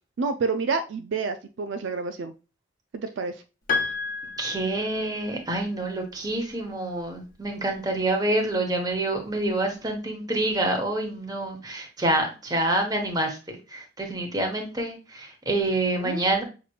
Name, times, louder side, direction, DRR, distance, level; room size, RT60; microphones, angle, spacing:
voice 1, 0.2-2.3 3.2-3.3 16.0-16.2, right 4 dB, 65° right, 8 dB, 0.4 m, -28 dB
Piano, 3.7-5.4, left 4 dB, 45° left, 1.0 m, -30 dB
voice 2, 4.4-16.4, right 1 dB, 20° right, 2 dB, 1.0 m, -27 dB
5.8 x 3.0 x 2.4 m, 0.32 s
head